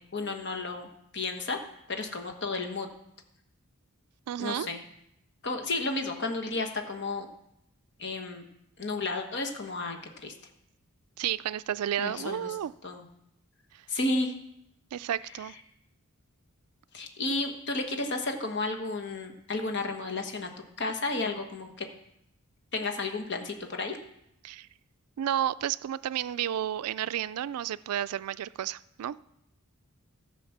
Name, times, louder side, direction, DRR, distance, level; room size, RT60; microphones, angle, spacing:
voice 1, 0.0-1.6 1.9-2.9 4.4-4.8 5.4-7.3 8.0-8.4 8.8-10.3 12.0-12.5 12.8-13.0 13.9-14.3 16.9-20.5 20.8-21.9 22.7-24.0, left 3 dB, 50° left, 5 dB, 1.3 m, -32 dB
voice 2, 4.3-4.7 11.2-12.7 14.9-15.5 24.4-24.7 25.2-29.2, right 10 dB, 90° right, 17 dB, 0.3 m, -31 dB
14.0 x 5.1 x 7.2 m, 0.79 s
head